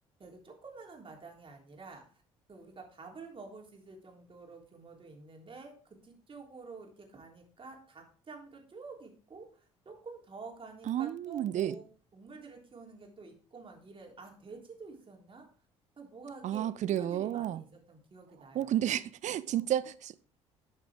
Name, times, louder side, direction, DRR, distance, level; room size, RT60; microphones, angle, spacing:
voice 1, 0.2-2.0 2.5-5.7 6.0-11.9 12.1-15.5 16.0-18.7 19.5-19.6, right 4 dB, 35° right, 3.3 m, -49 dB
voice 2, 10.9-11.8 16.4-17.6 18.5-20.2, right 11 dB, 50° right, 0.7 m, -31 dB
11.5 x 6.5 x 3.6 m
figure-of-eight pair, 50°, 16 cm